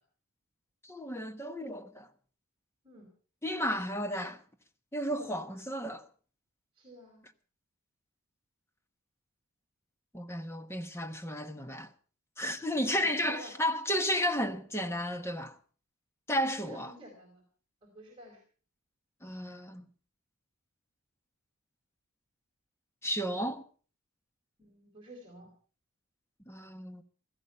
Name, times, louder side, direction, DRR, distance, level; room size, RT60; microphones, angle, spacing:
voice 1, 0.8-2.1 3.4-4.4 4.9-6.0 10.1-11.9 12.4-15.6 16.3-16.9 19.2-19.9 23.0-23.6 26.5-27.0, equal, 10° left, 1.1 m, -33 dB
voice 2, 6.7-7.3 12.9-13.5 16.6-17.4 17.8-18.4 24.6-25.5, right 1 dB, 25° right, 4.0 m, -51 dB
17.0 x 14.0 x 5.6 m
head